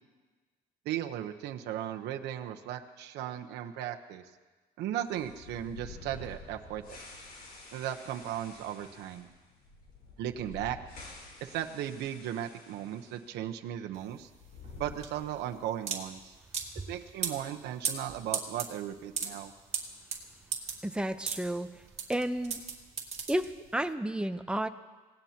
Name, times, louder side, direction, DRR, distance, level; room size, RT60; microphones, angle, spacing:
voice 1, 0.8-4.2 4.8-6.8 7.7-9.3 10.2-10.8 11.4-14.3 14.8-16.3 16.9-19.5, right 11 dB, 80° right, 5 dB, 1.0 m, -36 dB
sound 1, 5.1-13.3 13.5-13.6 14.3-15.6, left 3 dB, 65° left, 4.4 m, -50 dB
sound 2, 13.9-23.9, right 6 dB, 40° right, 2.7 m, -37 dB
voice 2, 20.8-21.7 22.1-22.6 23.3-24.7, right 1 dB, 5° right, 8 dB, 0.8 m, -31 dB
25.5 x 18.5 x 3.0 m, 1.3 s
cardioid pair, 110°, 17 cm